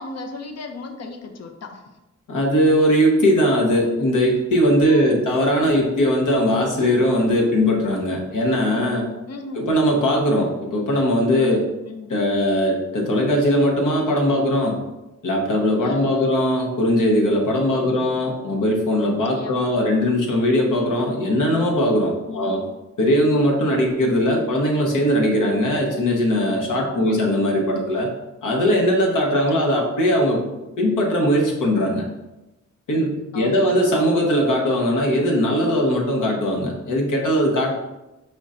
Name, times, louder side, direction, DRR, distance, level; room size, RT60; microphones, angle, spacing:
voice 1, 0.0-1.9 4.0-4.1 4.8-5.2 9.3-9.7 11.8-12.1 15.8-16.4 17.8-18.1 19.0-19.7 22.3-22.6 26.8-27.2 29.3-29.5 33.3-33.7, left 3 dB, 55° left, 5 dB, 0.6 m, -36 dB
voice 2, 2.3-9.1 9.5-11.7 12.1-14.8 15.2-22.6 23.0-28.1 28.4-30.4 30.8-32.1 32.9-37.7, equal, 80° left, -1 dB, 1.1 m, -20 dB
5.0 x 2.5 x 4.2 m, 0.98 s
wide cardioid pair, 105°, 31 cm